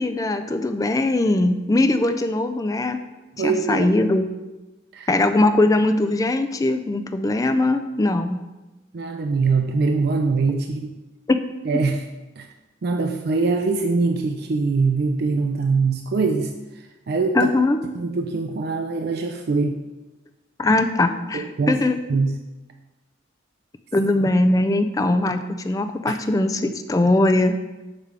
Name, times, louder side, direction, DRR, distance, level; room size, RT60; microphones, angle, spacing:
voice 1, 0.0-3.0 3.4-4.3 5.1-8.4 10.5-10.6 11.3-11.4 17.3-17.8 20.6-22.0 23.9-27.6, left 2 dB, 20° left, 8 dB, 0.3 m, -20 dB
voice 2, 3.4-3.9 4.9-5.1 8.9-10.9 11.7-12.0 12.4-12.5 12.8-16.5 17.1-17.5 18.0-19.8 21.3-21.8 22.1-22.4 26.1-26.2, right 4 dB, 55° right, 4 dB, 0.4 m, -22 dB
6.5 x 3.4 x 4.9 m, 1.1 s
head